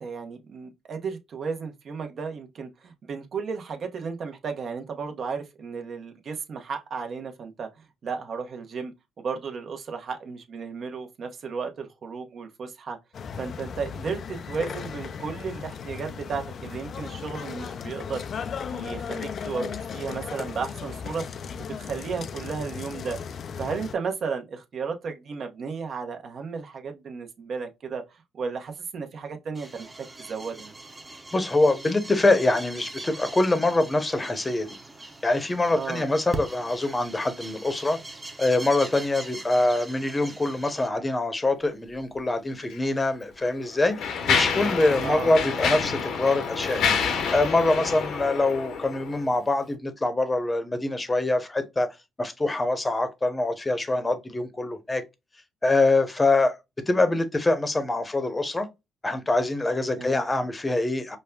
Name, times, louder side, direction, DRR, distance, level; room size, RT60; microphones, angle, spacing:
voice 1, 0.0-8.9 9.2-13.0 13.4-18.2 18.7-21.3 21.6-23.2 23.6-30.7 35.7-36.1 44.6-45.3 59.9-60.3, right 5 dB, 55° right, 0.9 m, -34 dB
sound 1, 13.1-23.9, left 6 dB, 55° left, 0.3 m, -36 dB
sound 2, 29.5-40.9, right 2 dB, 20° right, 0.8 m, -41 dB
voice 2, 31.3-34.8 35.2-38.0 38.4-46.9 47.3-51.9 52.2-55.0 55.6-56.5 56.9-58.7 59.0-61.2, left 2 dB, 20° left, 0.8 m, -24 dB
Mechanisms, 42.6-42.8 43.5-49.2, left 6 dB, 80° left, 0.9 m, -28 dB
5.2 x 2.2 x 2.3 m
cardioid pair, 90°, 0 cm